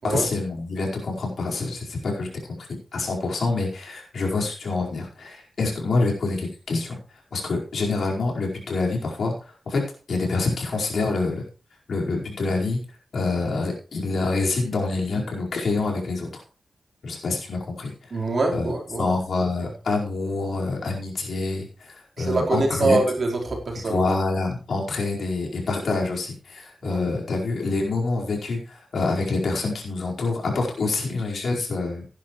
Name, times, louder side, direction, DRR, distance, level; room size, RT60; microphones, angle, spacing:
voice 1, 0.0-2.3 2.6-2.7 2.9-7.0 7.3-9.3 9.7-9.8 10.1-11.4 11.9-12.8 13.1-16.4 17.0-17.9 18.5-18.7 19.0-23.0 23.9-32.1, left 3 dB, 75° left, -1 dB, 4.7 m, -26 dB
voice 2, 18.1-19.2 19.6-19.7 22.2-24.1 26.8-27.0, right 3 dB, 55° right, 0 dB, 4.2 m, -24 dB
16.5 x 10.5 x 3.2 m, 0.36 s
wide cardioid pair, 100°, 0 cm